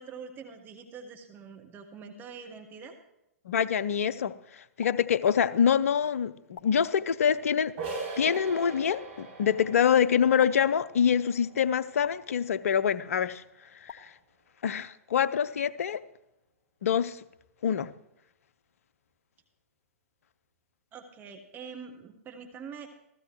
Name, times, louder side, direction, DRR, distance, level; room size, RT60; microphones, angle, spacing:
voice 1, 0.0-2.9 20.9-22.9, right 6 dB, 20° right, 1.3 m, -44 dB
voice 2, 3.5-7.7 8.2-13.4 13.8-14.1 14.6-16.0 16.8-17.2 17.6-17.9, left 8 dB, 60° left, 0.6 m, -25 dB
sound 1, 4.8-5.0 6.5-6.7 8.3-8.5 10.4-10.5 12.0-12.2 13.9-14.0, left 6 dB, 35° left, 1.4 m, -46 dB
sound 2, 7.8-13.3, right 3 dB, 55° right, 6.4 m, -42 dB
15.0 x 15.0 x 3.1 m
figure-of-eight pair, 110°, 9 cm